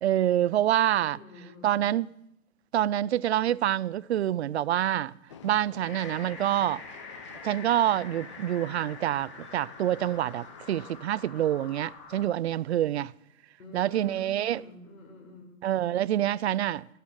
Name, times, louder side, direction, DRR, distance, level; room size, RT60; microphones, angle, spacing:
voice 1, 0.0-1.2 1.6-2.1 2.7-5.1 5.4-6.8 7.4-13.1 13.7-14.6 15.6-16.9, right 12 dB, 55° right, 0.5 m, -26 dB
voice 2, 1.1-1.9 13.6-15.6, left 1 dB, 80° left, 5.1 m, -48 dB
Train, 5.3-11.0, left 7 dB, 25° left, 0.5 m, -50 dB
sound 1, 5.8-12.2, left 4 dB, 45° left, 5.6 m, -46 dB
15.0 x 8.1 x 8.9 m
hypercardioid pair, 155°, 40 cm